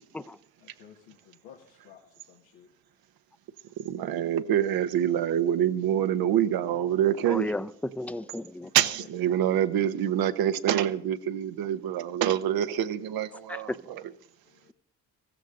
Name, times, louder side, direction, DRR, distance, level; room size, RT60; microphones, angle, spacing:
voice 1, 0.6-2.7 8.6-9.1 14.4-14.7, left 9 dB, 80° left, 1.8 m, -54 dB
voice 2, 3.8-7.5 8.7-14.1, right 10 dB, 75° right, 1.2 m, -26 dB
voice 3, 7.3-8.7 13.5-13.8, left 1 dB, 5° left, 0.8 m, -33 dB
15.5 x 15.0 x 3.9 m
supercardioid pair, 60°, 37 cm